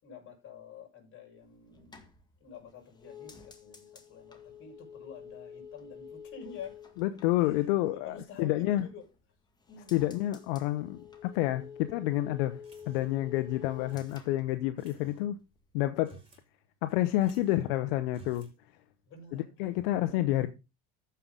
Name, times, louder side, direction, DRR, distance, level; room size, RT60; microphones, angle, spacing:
voice 1, 0.0-2.1 2.4-6.8 7.4-9.0 9.7-10.0 19.1-19.5 20.0-20.3, left 6 dB, 45° left, 5.8 m, -48 dB
sound 1, 1.4-8.2 8.6-9.3 9.6-15.3 15.5-16.0, left 7 dB, 15° left, 1.9 m, -50 dB
voice 2, 7.0-8.9 9.9-12.6 12.9-15.4 15.7-16.2 16.8-18.5 19.3-20.5, left 15 dB, 80° left, 0.9 m, -29 dB
sound 2, 12.6-13.3 13.9-14.3 14.8-15.2 15.9-16.5 16.7-16.8 17.2-17.7 18.1-18.6, right 3 dB, 20° right, 4.3 m, -55 dB
14.5 x 5.7 x 3.8 m
supercardioid pair, 110°, 29 cm